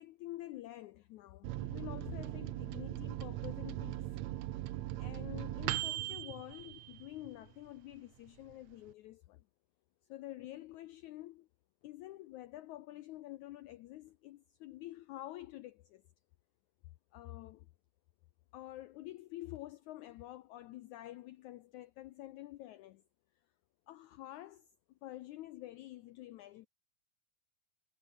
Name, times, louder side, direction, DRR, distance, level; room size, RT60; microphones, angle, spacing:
voice 1, 0.0-4.1 5.0-9.4 10.1-11.5 11.8-16.0 17.1-17.7 18.5-23.0 23.9-26.7, left 15 dB, 85° left, 1.7 m, -48 dB
Microwave oven, 1.4-7.5 7.9-8.0 8.3-8.9, right 15 dB, 85° right, 1.5 m, -39 dB
omnidirectional pair, 4.2 m